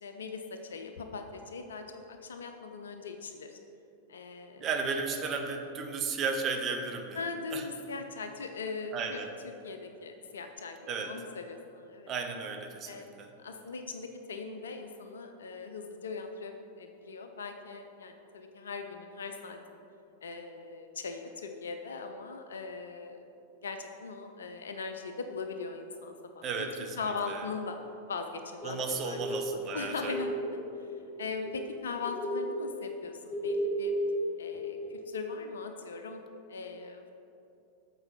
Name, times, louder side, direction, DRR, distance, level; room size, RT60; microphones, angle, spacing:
voice 1, 0.0-3.6 4.1-4.7 7.1-9.2 9.6-12.1 12.9-19.8 20.2-23.3 23.6-26.7 27.0-27.8 28.1-28.8 29.1-29.2 29.7-30.3 31.2-33.9 34.4-36.2 36.5-37.1, left 4 dB, 65° left, 6 dB, 0.5 m, -40 dB
voice 2, 4.6-7.3 7.5-7.6 8.9-9.3 10.9-11.2 12.1-13.3 26.4-27.0 27.3-27.5 28.6-30.2, right 4 dB, 30° right, 3 dB, 0.9 m, -34 dB
sound 1, 28.6-31.8 32.0-35.0, equal, 20° left, 0.8 m, -34 dB
7.8 x 4.6 x 5.6 m, 2.7 s
figure-of-eight pair, 90°, 0 cm